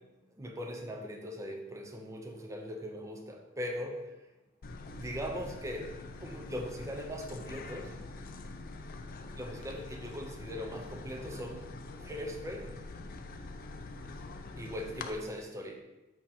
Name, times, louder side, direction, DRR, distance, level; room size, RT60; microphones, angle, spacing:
voice 1, 0.4-4.1 4.8-5.9 6.2-7.9 9.3-11.7 12.0-12.7 14.6-15.8, equal, 15° right, 1 dB, 0.6 m, -40 dB
sound 1, 4.6-15.1, left 3 dB, 45° left, 0.5 m, -45 dB
7.5 x 2.9 x 5.5 m, 1.1 s
head